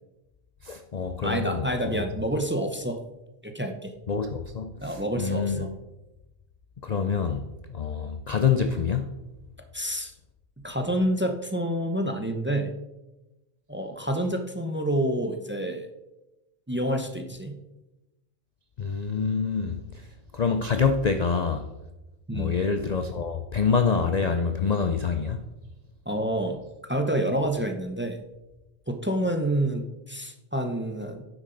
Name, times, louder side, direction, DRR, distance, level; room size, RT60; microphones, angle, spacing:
voice 1, 0.6-1.9 4.1-5.7 6.8-9.1 18.8-19.8 20.3-21.7 22.3-25.4, left 5 dB, 65° left, 0.4 m, -26 dB
voice 2, 1.2-3.0 3.4-3.9 4.8-5.7 9.7-10.1 10.6-12.8 13.7-15.9 16.7-17.6 22.3-22.5 26.1-26.6 26.9-28.2 28.9-31.2, right 1 dB, 15° right, 0.4 m, -28 dB
9.7 x 8.0 x 3.8 m
omnidirectional pair, 1.4 m